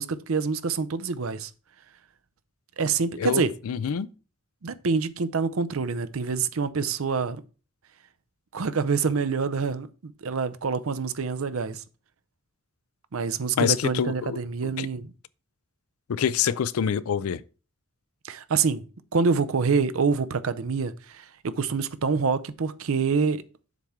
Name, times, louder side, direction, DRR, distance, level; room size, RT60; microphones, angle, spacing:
voice 1, 0.0-1.5 2.8-3.5 4.6-7.4 8.5-11.8 13.1-15.1 18.2-18.8 19.1-23.4, right 5 dB, 75° right, 0.6 m, -26 dB
voice 2, 3.2-4.1 13.6-14.9 16.1-17.4, left 8 dB, 85° left, 0.4 m, -26 dB
7.3 x 3.7 x 5.7 m
head